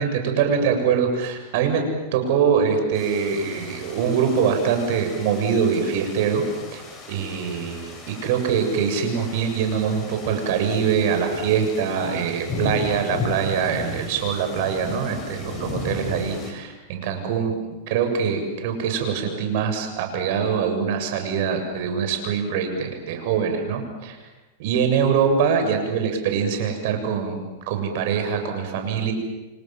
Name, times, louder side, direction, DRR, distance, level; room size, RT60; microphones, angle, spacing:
voice 1, 0.0-1.8 2.1-6.8 7.1-7.8 8.1-17.5 17.9-24.2 24.6-29.1, right 6 dB, 60° right, 6 dB, 7.2 m, -23 dB
sound 1, 2.9-16.5, left 3 dB, 15° left, 7.8 m, -35 dB
30.0 x 25.5 x 7.6 m, 1.1 s
supercardioid pair, 145°, 0 cm